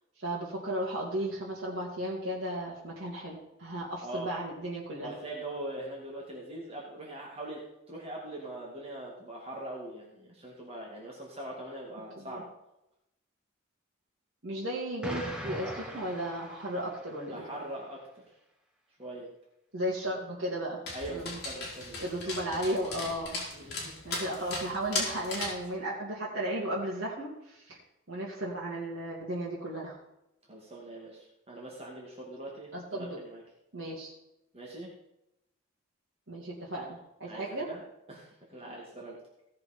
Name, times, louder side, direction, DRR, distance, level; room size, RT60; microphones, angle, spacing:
voice 1, 0.2-5.1 12.2-12.4 14.4-17.4 19.7-20.8 21.1-21.4 22.0-23.4 24.0-27.8 28.1-30.0 32.7-33.2 33.7-34.1 36.3-37.7, right 1 dB, 60° right, -6 dB, 2.6 m, -35 dB
voice 2, 5.0-7.6 7.9-12.5 17.3-18.0 19.0-19.3 20.9-22.1 23.3-23.9 30.5-33.4 34.5-34.9 37.3-37.8 38.1-39.2, right 1 dB, 30° right, -3 dB, 2.2 m, -42 dB
Explosion, 15.0-17.2, equal, 5° right, 1.2 m, -40 dB
Dog, 20.9-25.7, left 3 dB, 50° left, 3.7 m, -37 dB
17.0 x 6.6 x 4.4 m, 0.86 s
head